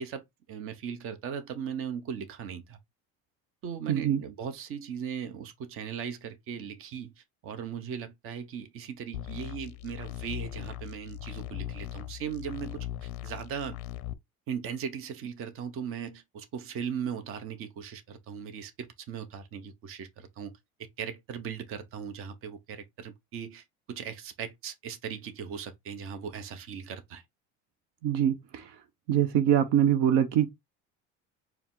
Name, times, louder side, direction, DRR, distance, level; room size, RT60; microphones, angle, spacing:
voice 1, 0.0-2.8 3.6-7.1 7.4-13.8 14.5-20.5 20.8-27.2, right 7 dB, 45° right, 0.8 m, -38 dB
voice 2, 3.9-4.2 28.0-28.7 29.1-30.5, right 10 dB, 75° right, 0.8 m, -24 dB
sound 1, 9.1-14.1, left 13 dB, 50° left, 0.5 m, -39 dB
4.6 x 2.1 x 3.7 m
cardioid pair, 145°, 31 cm